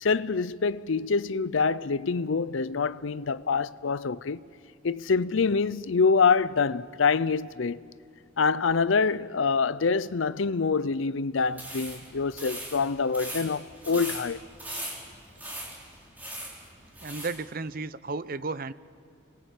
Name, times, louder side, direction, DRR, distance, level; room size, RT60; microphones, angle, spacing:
voice 1, 0.0-4.4 4.8-7.8 8.4-14.4, left 5 dB, 75° left, 0.6 m, -25 dB
sound 1, 11.5-17.4, right 1 dB, 10° right, 4.6 m, -40 dB
voice 2, 17.0-18.7, right 3 dB, 45° right, 0.6 m, -33 dB
28.5 x 21.0 x 8.3 m
head